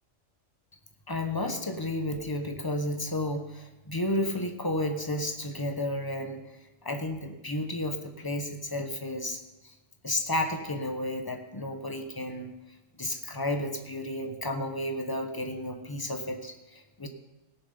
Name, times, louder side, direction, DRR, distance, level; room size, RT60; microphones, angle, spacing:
voice 1, 1.1-6.4 6.8-9.7 10.0-12.5 13.0-17.1, left 1 dB, 20° left, 5 dB, 1.0 m, -32 dB
17.0 x 7.2 x 5.5 m, 1.1 s
omnidirectional pair, 1.3 m